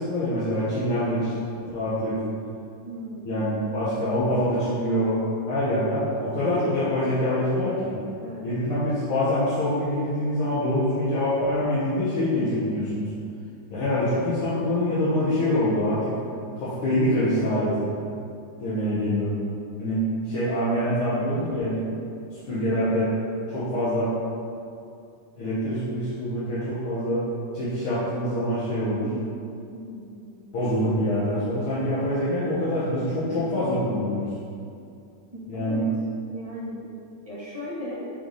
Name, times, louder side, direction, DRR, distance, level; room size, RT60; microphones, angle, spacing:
voice 1, 0.0-1.4 1.7-2.1 3.2-5.2 5.5-7.9 8.4-13.1 13.7-16.1 16.6-17.9 18.6-19.3 19.8-21.8 22.3-23.1 23.5-24.1 25.3-27.2 27.5-29.1 30.5-34.3 35.5-35.8, left 1 dB, 75° left, -12 dB, 2.1 m, -25 dB
voice 2, 2.8-3.3 8.2-8.5 29.0-29.3 29.7-30.4 35.3-35.8 36.3-36.8 37.3-38.0, left 1 dB, 30° right, -8 dB, 0.7 m, -37 dB
7.8 x 4.0 x 3.3 m, 2.5 s
omnidirectional pair, 2.4 m